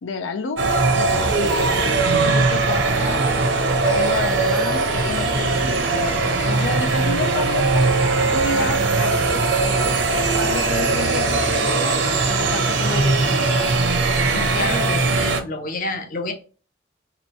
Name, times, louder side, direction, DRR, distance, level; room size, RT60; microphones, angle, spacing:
voice 1, 0.0-3.6 3.8-7.9 8.3-10.0 10.3-13.8, left 5 dB, 85° left, 0.4 m, -31 dB
sound 1, 0.6-15.4, right 3 dB, 75° right, 0.7 m, -20 dB
voice 2, 14.3-16.3, left 2 dB, 45° left, 0.7 m, -28 dB
3.0 x 3.0 x 4.3 m
head